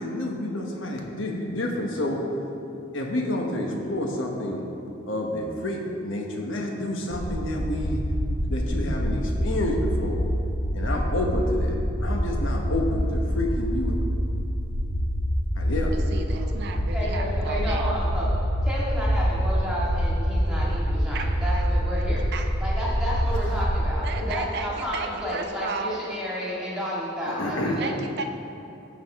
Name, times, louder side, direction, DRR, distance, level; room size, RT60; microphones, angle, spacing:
voice 1, 0.0-2.2 2.9-4.6 5.1-8.0 8.5-10.2 10.7-11.7 12.0-14.0 15.6-15.9 27.3-27.8, left 1 dB, 75° left, 1 dB, 1.2 m, -29 dB
sound 1, 7.1-23.9, equal, 45° left, 1.9 m, -26 dB
voice 2, 15.9-18.0 21.1-21.3 21.5-21.7 21.9-22.0 22.3-22.6 24.0-26.0 27.8-28.2, right 4 dB, 55° right, 5 dB, 0.5 m, -34 dB
voice 3, 16.9-18.3 18.6-22.3 22.6-27.9, equal, 5° right, -7 dB, 2.0 m, -31 dB
14.5 x 4.9 x 3.6 m, 2.9 s
head